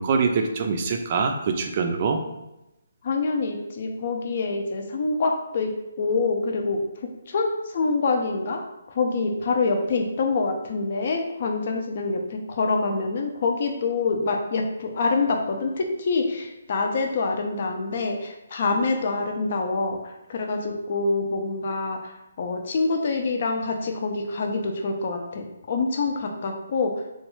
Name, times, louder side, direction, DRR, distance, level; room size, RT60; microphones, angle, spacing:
voice 1, 0.0-2.2, right 5 dB, 35° right, 4 dB, 0.4 m, -24 dB
voice 2, 3.0-5.7 6.0-6.8 7.3-8.6 8.9-22.1 22.4-26.9, left 3 dB, 45° left, 3 dB, 0.5 m, -26 dB
3.0 x 2.3 x 3.1 m, 0.93 s
hypercardioid pair, 160°, 0 cm